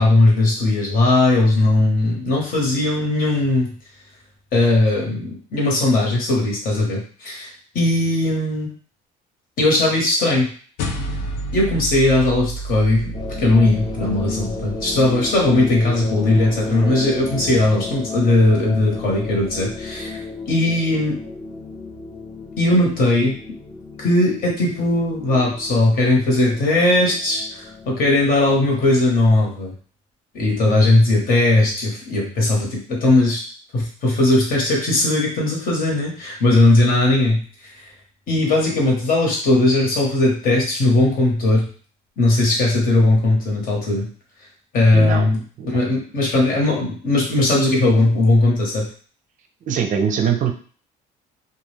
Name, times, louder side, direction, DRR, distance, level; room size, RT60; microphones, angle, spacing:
voice 1, 0.0-3.7 4.5-8.7 9.6-10.5 11.5-13.1 13.4-20.2 20.5-21.2 22.6-23.4 24.0-29.7 30.3-33.4 33.7-37.4 38.3-41.7 42.2-44.1 44.7-48.9, left 2 dB, 60° left, -2 dB, 1.2 m, -18 dB
sound 1, 10.8-15.4, right 1 dB, 85° left, 0.5 m, -30 dB
sound 2, 13.1-29.6, left 3 dB, 25° left, 0.5 m, -33 dB
voice 2, 44.9-45.3 45.6-45.8 49.7-50.5, right 7 dB, 50° right, 5 dB, 0.4 m, -22 dB
2.3 x 2.3 x 3.2 m, 0.43 s
cardioid pair, 110°, 17 cm